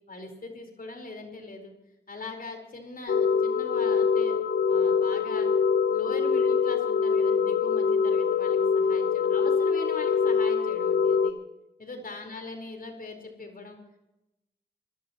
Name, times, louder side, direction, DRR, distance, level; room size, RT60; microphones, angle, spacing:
voice 1, 0.1-1.7 2.1-4.4 4.7-5.5 5.9-11.3 11.8-13.8, left 2 dB, 50° left, 4 dB, 4.6 m, -41 dB
sound 1, 3.1-11.3, left 6 dB, 70° left, 0.9 m, -24 dB
26.5 x 16.0 x 3.1 m, 0.91 s
cardioid pair, 45°, 18 cm